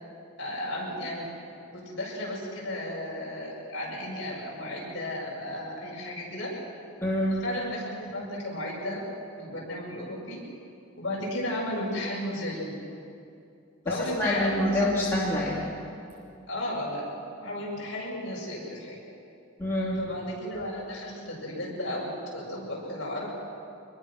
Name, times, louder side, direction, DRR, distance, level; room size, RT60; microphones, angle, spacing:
voice 1, 0.4-1.3 1.7-6.5 7.3-9.0 9.4-10.4 11.0-12.8 13.8-14.9 16.5-17.0 17.4-19.0 20.0-23.3, left 1 dB, 55° left, -4 dB, 7.4 m, -34 dB
voice 2, 7.0-7.4 13.9-15.6 19.6-20.0, left 1 dB, 10° left, -7 dB, 2.7 m, -26 dB
25.0 x 21.5 x 6.3 m, 2.7 s
head